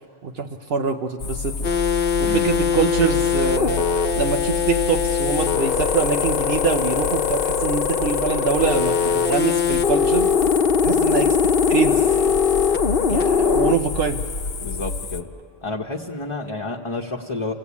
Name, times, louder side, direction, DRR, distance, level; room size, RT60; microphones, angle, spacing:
voice 1, 0.2-1.7 2.2-3.9 4.2-10.3 10.8-11.4 11.7-12.1 13.1-14.2, right 6 dB, 70° right, 3 dB, 1.1 m, -24 dB
sound 1, 1.2-15.2, left 4 dB, 80° left, 1.1 m, -29 dB
sound 2, 1.6-13.7, left 6 dB, 60° left, 1.0 m, -21 dB
voice 2, 14.6-15.3 15.6-17.5, left 3 dB, 30° left, 1 dB, 1.1 m, -30 dB
28.0 x 17.5 x 8.4 m, 2.6 s
omnidirectional pair, 1.1 m